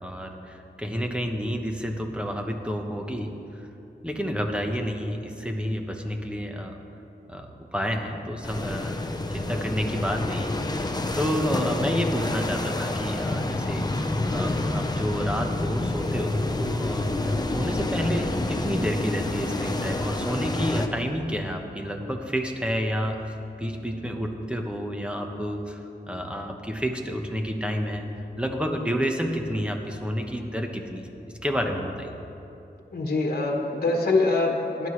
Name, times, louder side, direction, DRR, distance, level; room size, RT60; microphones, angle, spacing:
voice 1, 0.0-3.7 4.0-6.7 7.3-9.0 9.3-10.5 10.8-13.9 14.3-17.1 17.5-23.2 23.6-25.8 26.1-28.1 28.4-31.1 31.4-32.1, equal, 5° right, 2 dB, 1.1 m, -29 dB
sound 1, 8.4-20.9, left 2 dB, 25° left, 0.8 m, -28 dB
voice 2, 32.9-34.9, left 3 dB, 60° left, 0 dB, 1.4 m, -24 dB
17.5 x 11.0 x 3.2 m, 2.8 s
wide cardioid pair, 85°, 18 cm